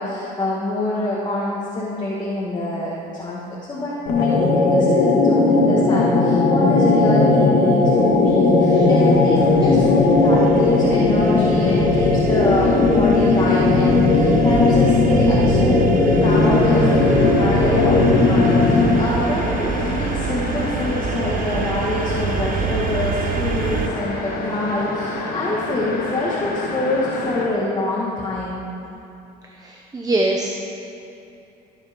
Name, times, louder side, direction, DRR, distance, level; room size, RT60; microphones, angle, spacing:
voice 1, 0.0-3.4 3.7-28.6, left 2 dB, 25° left, -6 dB, 1.9 m, -25 dB
sound 1, 4.1-19.2, left 3 dB, 80° left, 1.8 m, -17 dB
sound 2, 7.9-23.9, right 7 dB, 55° right, 0.9 m, -27 dB
sound 3, 16.2-27.5, left 2 dB, 60° left, 2.0 m, -29 dB
voice 2, 29.6-30.5, right 2 dB, 20° right, 1 dB, 0.9 m, -24 dB
16.5 x 7.4 x 5.3 m, 2.8 s
cardioid pair, 110°, 17 cm